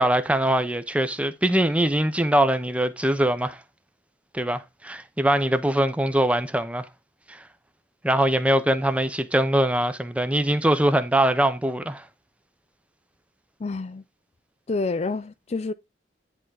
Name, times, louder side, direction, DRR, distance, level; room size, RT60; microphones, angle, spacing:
voice 1, 0.0-3.6 4.3-6.9 7.3-7.4 8.0-12.0, right 1 dB, 5° right, 0.7 m, -22 dB
voice 2, 13.6-14.0 14.7-15.7, left 3 dB, 35° left, 0.4 m, -28 dB
10.5 x 3.7 x 4.8 m
head